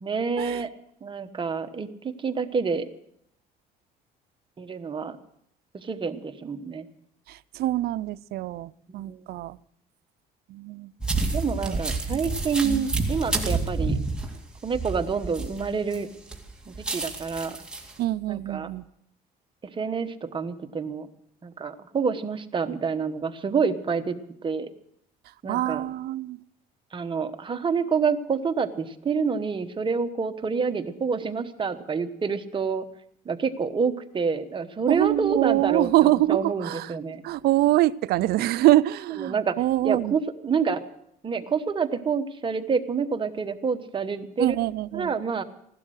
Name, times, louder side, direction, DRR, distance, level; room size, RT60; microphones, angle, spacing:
voice 1, 0.0-0.7 1.0-2.9 4.6-5.2 5.7-6.9 9.1-9.2 11.3-14.0 14.6-16.1 16.7-17.6 18.3-18.7 19.7-21.1 21.4-24.2 24.4-24.7 25.4-25.8 26.9-32.8 33.2-35.9 36.3-37.2 39.2-39.6 39.8-40.8 41.2-44.5 44.9-45.4, right 5 dB, 30° right, 7 dB, 1.1 m, -27 dB
voice 2, 7.3-9.6 10.5-10.9 11.2-11.3 11.6-12.3 12.6-12.9 18.0-18.9 25.2-26.4 34.9-37.0 37.2-40.2 44.4-45.2, right 16 dB, 70° right, 15 dB, 0.5 m, -25 dB
sound 1, 11.0-16.0 16.3-17.9, right 3 dB, 5° right, 2.4 m, -29 dB
16.5 x 12.0 x 6.4 m, 0.73 s
cardioid pair, 110°, 17 cm